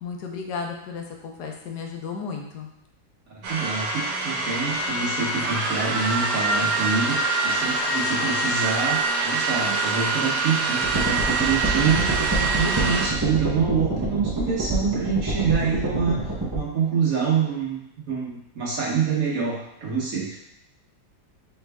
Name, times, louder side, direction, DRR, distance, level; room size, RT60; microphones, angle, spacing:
voice 1, 0.0-2.7, left 5 dB, 80° left, 2 dB, 1.3 m, -34 dB
sound 1, 3.4-13.1, right 3 dB, 85° right, 1.5 m, -25 dB
voice 2, 3.5-16.2 16.5-17.8 18.1-20.4, right 5 dB, 60° right, -4 dB, 1.4 m, -26 dB
sound 2, 10.8-16.6, right 2 dB, 20° right, 0.6 m, -27 dB
4.6 x 3.4 x 3.4 m, 0.79 s
omnidirectional pair, 1.7 m